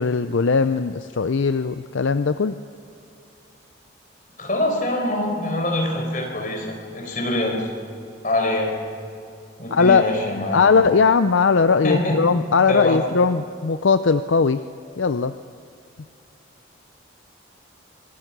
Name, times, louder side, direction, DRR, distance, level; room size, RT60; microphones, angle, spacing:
voice 1, 0.0-2.6 9.7-10.0 10.5-14.6 15.0-15.3, left 5 dB, 70° left, 10 dB, 0.5 m, -19 dB
voice 2, 4.4-7.7 8.2-8.8 9.6-10.7 11.8-12.2 12.7-13.0, left 1 dB, 40° left, 1 dB, 4.7 m, -24 dB
26.0 x 19.0 x 6.1 m, 2.6 s
head